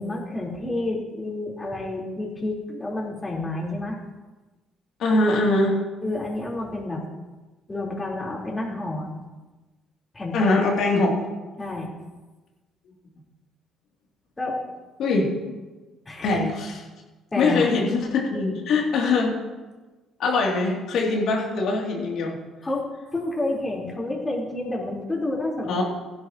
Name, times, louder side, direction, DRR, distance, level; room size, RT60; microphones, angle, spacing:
voice 1, 0.0-4.0 6.0-7.0 7.7-9.1 10.1-10.6 11.6-11.9 14.4-14.6 16.1-16.4 17.3-17.7 22.6-22.8 23.1-25.8, left 2 dB, 25° left, -3 dB, 4.4 m, -29 dB
voice 2, 5.0-5.8 10.3-11.1 15.0-15.6 16.2-16.8 17.4-19.3 20.2-22.4 25.7-25.8, left 3 dB, 65° left, -1 dB, 3.2 m, -22 dB
16.0 x 10.5 x 3.2 m, 1.2 s
hypercardioid pair, 55°, 0 cm